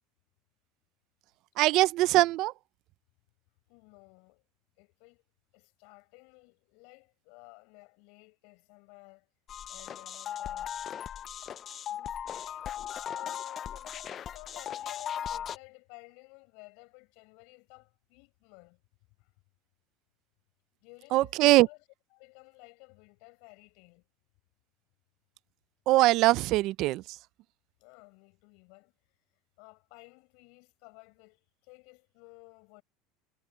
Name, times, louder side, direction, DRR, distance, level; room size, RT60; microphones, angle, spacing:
voice 1, 1.6-2.5 21.1-21.7 25.9-27.0, right 18 dB, 50° right, 0.4 m, -22 dB
voice 2, 3.7-4.4 4.8-5.2 5.5-9.3 9.7-10.7 11.9-12.7 13.0-18.8 19.2-19.3 20.8-21.8 22.1-24.1 27.8-28.9 29.6-32.8, left 32 dB, 65° left, 6.6 m, -54 dB
sound 1, 9.5-15.6, left 9 dB, 30° left, 0.4 m, -38 dB
supercardioid pair, 145°, 0 cm